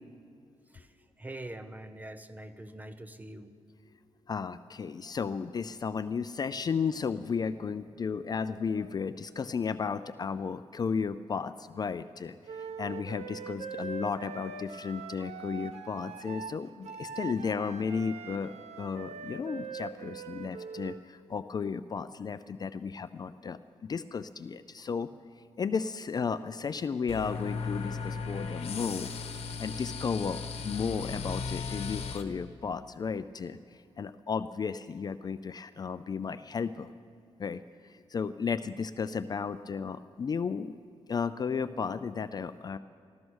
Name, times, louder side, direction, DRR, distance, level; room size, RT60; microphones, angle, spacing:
voice 1, 0.7-3.5, right 1 dB, 15° right, 9 dB, 0.8 m, -44 dB
voice 2, 4.3-25.1 25.6-29.1 29.6-36.9 37.4-40.7 41.1-42.8, left 5 dB, 35° left, 12 dB, 0.4 m, -34 dB
Wind instrument woodwind instrument, 12.5-21.0, right 6 dB, 80° right, 0.8 m, -42 dB
sound 1, 27.1-32.2, left 5 dB, 65° left, 1.2 m, -36 dB
14.0 x 13.5 x 6.3 m, 2.4 s
cardioid pair, 110°, 11 cm